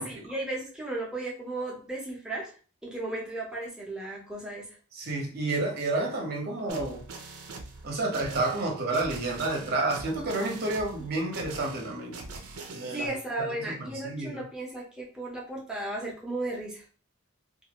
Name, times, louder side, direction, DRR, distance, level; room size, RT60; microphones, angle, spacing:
voice 1, 0.0-2.5 2.8-4.6 12.9-16.8, right 2 dB, 5° right, 0.7 m, -35 dB
voice 2, 4.9-7.0 7.8-12.2 12.7-13.1 13.5-13.7 14.0-14.4, right 2 dB, 45° right, 0.8 m, -30 dB
sound 1, 6.7-13.1, right 3 dB, 85° right, 0.6 m, -43 dB
2.5 x 2.4 x 3.0 m
head